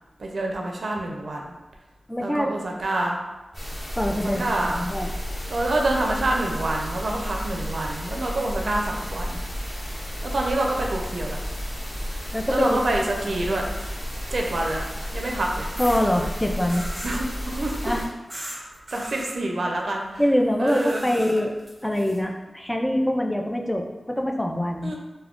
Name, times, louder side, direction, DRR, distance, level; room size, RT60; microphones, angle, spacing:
voice 1, 0.2-1.6 2.2-3.2 4.2-4.8 5.5-9.4 10.2-11.4 12.5-13.7 14.3-14.9 15.1-15.7 17.0-17.8 18.3-20.2 20.6-21.0 24.8-25.0, right 2 dB, 70° right, 0 dB, 0.4 m, -27 dB
voice 2, 2.1-2.5 3.9-5.1 12.3-12.8 15.8-16.9 17.8-18.0 20.2-21.5 21.8-25.0, equal, 10° left, 2 dB, 0.3 m, -24 dB
sound 1, 3.5-18.0, equal, 45° left, 1.2 m, -32 dB
sound 2, 14.1-15.1 15.8-16.0 16.7-17.2 18.3-18.6 18.9-19.3 20.7-22.2, equal, 15° right, 0.9 m, -39 dB
2.3 x 2.1 x 3.5 m, 1.1 s
wide cardioid pair, 60°, 0 cm